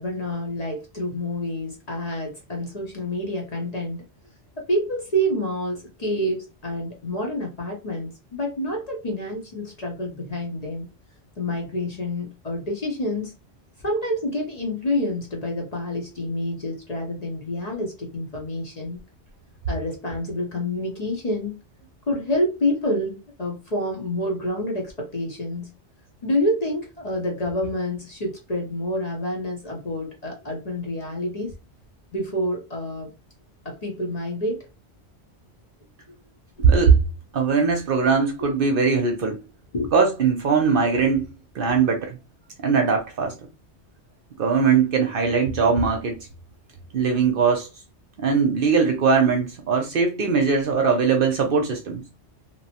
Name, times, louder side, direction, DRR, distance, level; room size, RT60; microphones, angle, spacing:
voice 1, 0.0-4.0 4.6-10.9 11.4-13.3 13.8-19.0 19.7-21.6 22.1-25.7 26.2-31.5 32.1-33.1 33.6-34.7 36.6-36.7 39.7-39.9, left 1 dB, 45° left, 0.7 m, -28 dB
voice 2, 36.6-37.0 37.3-39.4 39.9-41.3 41.5-42.2 42.6-43.3 44.4-46.2 46.9-47.7 48.2-52.0, right 5 dB, 60° right, 0.7 m, -20 dB
2.9 x 2.0 x 2.7 m
omnidirectional pair, 1.2 m